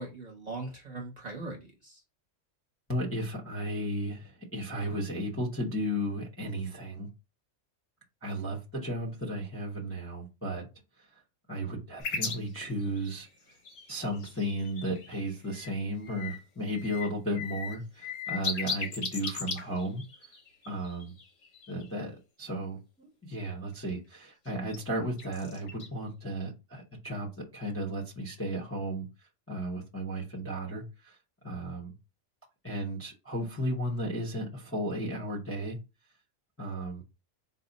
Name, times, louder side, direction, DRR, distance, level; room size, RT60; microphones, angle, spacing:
voice 1, 0.0-2.0, right 2 dB, 35° right, 0.9 m, -40 dB
voice 2, 2.9-7.1 8.2-10.7 11.5-13.3 13.9-20.0 20.7-21.1 21.7-29.1 29.5-31.1 31.4-31.9 32.6-35.8 36.6-37.0, equal, 15° left, 0.6 m, -34 dB
sound 1, 12.0-15.7 16.0-16.4 16.7-21.9 24.5-24.8 25.2-25.9, left 5 dB, 90° left, 1.3 m, -38 dB
4.1 x 2.1 x 3.9 m
omnidirectional pair, 1.3 m